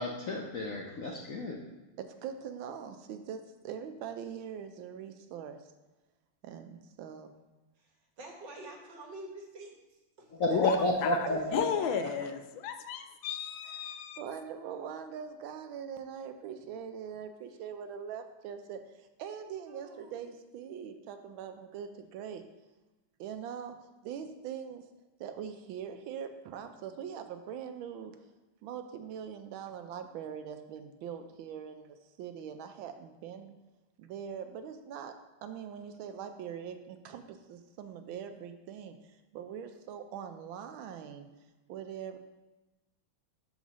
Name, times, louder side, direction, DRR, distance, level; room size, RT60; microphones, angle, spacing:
voice 1, 0.0-1.6 10.3-12.3, left 1 dB, 65° left, -1 dB, 0.8 m, -32 dB
voice 2, 2.0-5.6 6.4-7.3 10.5-10.7 11.3-12.1 13.6-13.8 14.2-18.8 19.2-22.4 23.2-23.8 24.0-24.8 25.2-28.1 28.6-33.5 34.0-39.0 39.3-41.3 41.7-42.2, right 8 dB, 80° right, 8 dB, 1.4 m, -42 dB
voice 3, 8.2-9.7 10.2-10.3 10.6-10.8 19.7-20.1, right 2 dB, 65° right, 0 dB, 1.8 m, -46 dB
voice 4, 11.5-14.2, left 8 dB, 80° left, 8 dB, 1.4 m, -33 dB
5.5 x 4.8 x 6.1 m, 1.1 s
omnidirectional pair, 2.2 m